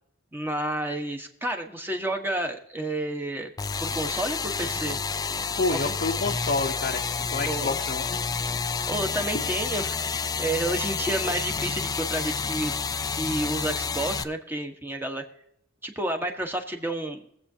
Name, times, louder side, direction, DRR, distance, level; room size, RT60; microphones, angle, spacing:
voice 1, 0.3-3.5 3.8-5.0 5.7-5.9 7.5-7.8 8.9-10.1 10.4-12.7 13.1-15.2 15.8-17.2, right 1 dB, 10° right, 3 dB, 1.3 m, -30 dB
sound 1, 3.6-14.2, left 5 dB, 20° left, 0.4 m, -29 dB
voice 2, 5.6-8.2 9.3-9.5, left 3 dB, 50° left, 0 dB, 0.8 m, -29 dB
23.0 x 7.9 x 2.8 m, 0.75 s
head